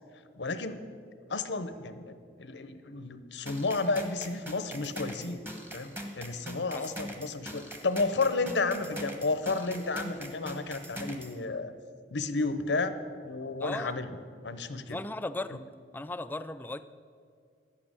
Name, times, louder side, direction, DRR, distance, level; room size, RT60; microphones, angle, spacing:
voice 1, 0.4-0.8 1.3-5.4 5.7-11.7 12.1-12.9 13.2-14.1 14.4-15.0, left 3 dB, 85° left, 11 dB, 0.9 m, -32 dB
sound 1, 3.5-11.4, right 1 dB, 10° right, 1.2 m, -42 dB
voice 2, 13.6-14.0 14.9-15.6 15.9-16.8, left 2 dB, 10° left, 12 dB, 0.3 m, -36 dB
11.5 x 8.6 x 8.8 m, 2.3 s
head